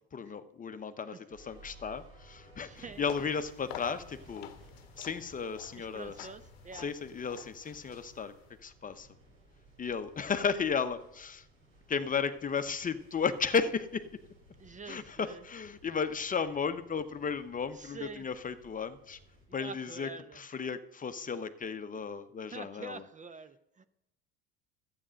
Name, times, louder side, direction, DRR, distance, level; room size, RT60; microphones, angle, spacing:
voice 1, 0.1-4.5 5.0-6.3 6.7-8.3 8.6-9.1 9.8-11.5 11.9-14.2 14.9-19.2 19.5-23.0, left 6 dB, 25° left, 10 dB, 0.9 m, -34 dB
sound 1, 1.3-19.4, right 1 dB, 90° right, 6.2 m, -58 dB
voice 2, 2.6-3.0 5.7-6.9 14.6-15.4 17.7-18.3 19.5-20.4 22.4-23.8, right 4 dB, 25° right, 12 dB, 0.8 m, -46 dB
Acoustic guitar / Strum, 2.8-6.2, right 1 dB, 65° right, 3.3 m, -65 dB
sound 2, 2.9-8.6, left 11 dB, 85° left, 0.8 m, -50 dB
12.5 x 8.8 x 6.3 m, 0.83 s
hypercardioid pair, 75°, 30 cm